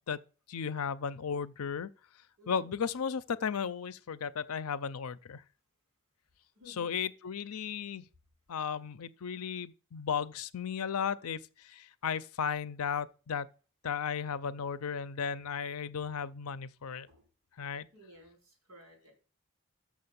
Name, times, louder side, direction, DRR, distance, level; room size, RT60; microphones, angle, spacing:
voice 1, 0.5-1.9 2.5-5.4 6.7-8.0 8.5-13.5 13.8-17.1 17.6-17.9, left 7 dB, 85° left, 0.5 m, -35 dB
voice 2, 2.4-2.7 6.5-6.9 17.1-17.2 17.9-19.1, left 1 dB, 70° right, 4.9 m, -56 dB
6.5 x 6.4 x 7.0 m
head